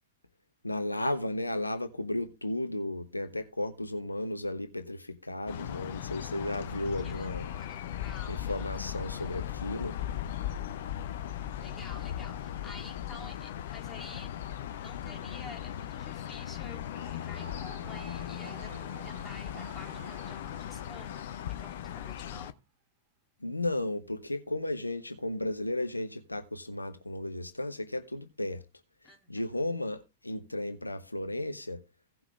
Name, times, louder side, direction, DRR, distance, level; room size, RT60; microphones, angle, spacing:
voice 1, 0.6-7.5 8.3-9.9 23.4-28.6 29.3-31.8, left 1 dB, 85° left, 0.9 m, -34 dB
sound 1, 5.5-22.5, left 11 dB, 60° left, 0.8 m, -38 dB
voice 2, 7.0-8.7 11.6-14.3 14.7-18.7 19.0-22.6 29.0-29.3, left 3 dB, 10° left, 3.5 m, -50 dB
sound 2, 16.8-22.1, right 6 dB, 50° right, 7.1 m, -52 dB
17.0 x 5.9 x 3.4 m
figure-of-eight pair, 90°, 0 cm